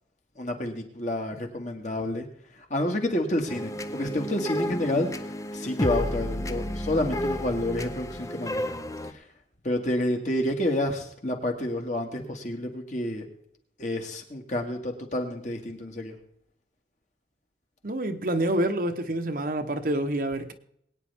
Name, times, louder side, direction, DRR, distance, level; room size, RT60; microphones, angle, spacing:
voice 1, 0.4-2.3 2.7-5.1 5.5-8.7 9.1-9.2 9.6-13.3 13.8-16.2, left 1 dB, 40° left, 1.8 m, -29 dB
sound 1, 3.5-9.1, equal, 20° left, 0.6 m, -32 dB
voice 2, 17.8-20.5, right 1 dB, 50° right, 1.0 m, -27 dB
22.5 x 9.3 x 3.5 m
head